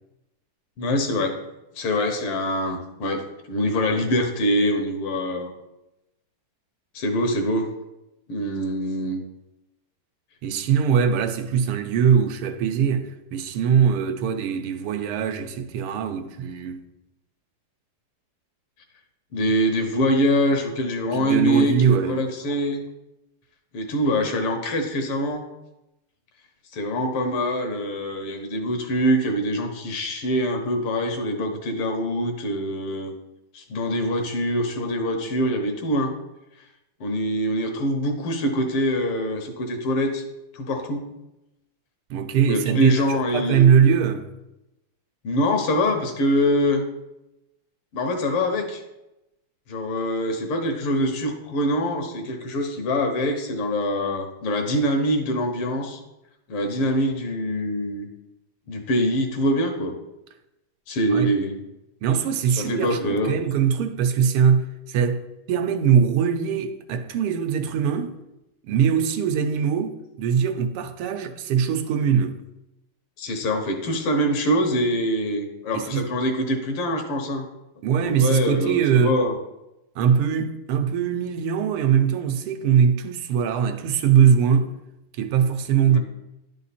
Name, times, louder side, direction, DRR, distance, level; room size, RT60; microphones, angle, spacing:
voice 1, 0.8-1.4 1.8-5.5 6.9-7.7 8.3-9.2 19.3-22.8 23.7-25.5 26.7-33.1 33.5-36.2 37.0-40.2 40.5-41.1 42.4-43.7 45.2-46.9 47.9-48.8 49.7-56.0 56.5-58.1 58.7-59.9 60.9-61.6 62.6-63.4 73.2-77.5 78.0-79.4 85.8-86.0, equal, 80° left, 2.0 m, -24 dB
voice 2, 10.4-16.8 21.1-22.2 42.1-44.3 61.1-61.3 62.0-68.2 68.6-72.4 75.7-76.1 77.8-79.2 80.0-84.7 85.2-86.0, right 7 dB, 85° right, 1.6 m, -21 dB
10.5 x 4.6 x 4.2 m
omnidirectional pair, 2.4 m